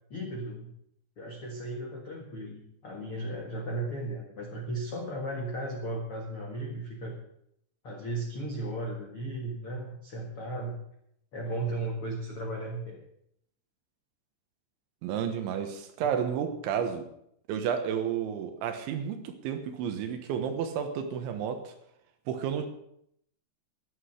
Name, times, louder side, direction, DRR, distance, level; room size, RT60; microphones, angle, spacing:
voice 1, 0.1-0.7 1.2-7.1 7.8-10.8 11.3-13.0, right 1 dB, 85° left, 0 dB, 1.2 m, -35 dB
voice 2, 15.0-17.1 17.5-21.7 22.3-22.7, right 8 dB, 75° right, 7 dB, 3.4 m, -31 dB
13.5 x 10.5 x 6.4 m, 0.74 s
omnidirectional pair, 5.8 m